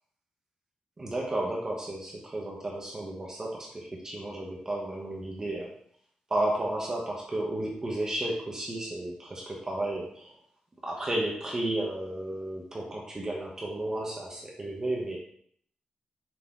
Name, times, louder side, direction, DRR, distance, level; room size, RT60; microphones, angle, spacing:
voice 1, 1.0-5.7 6.3-10.3 10.8-15.2, right 1 dB, 20° right, -2 dB, 1.0 m, -33 dB
6.0 x 4.2 x 3.7 m, 0.63 s
wide cardioid pair, 175°, 3 cm